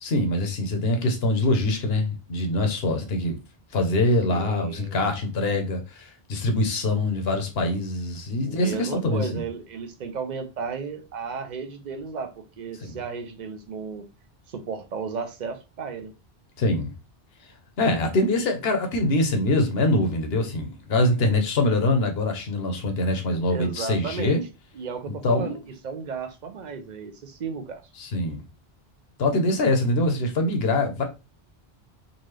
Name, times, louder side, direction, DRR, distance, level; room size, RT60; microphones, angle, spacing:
voice 1, 0.0-3.4 3.7-9.4 12.8-13.0 16.6-16.9 17.8-24.4 25.2-25.6 28.0-28.4 29.2-31.0, left 2 dB, 75° left, 1.1 m, -24 dB
voice 2, 4.3-5.0 8.4-14.0 14.5-16.1 23.5-24.4 24.7-27.8, right 5 dB, 50° right, 0.7 m, -34 dB
3.9 x 2.4 x 3.2 m
omnidirectional pair, 1.0 m